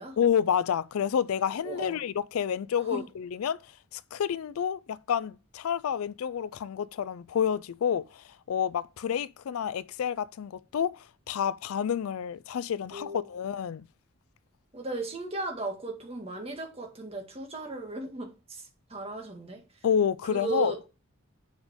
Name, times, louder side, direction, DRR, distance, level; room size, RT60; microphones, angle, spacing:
voice 1, 0.2-13.9 19.8-20.7, left 8 dB, 80° left, 0.4 m, -29 dB
voice 2, 1.6-2.0 2.9-3.1 12.9-13.3 14.7-19.6 20.3-20.8, right 3 dB, 30° right, 1.8 m, -36 dB
7.3 x 5.1 x 5.1 m
head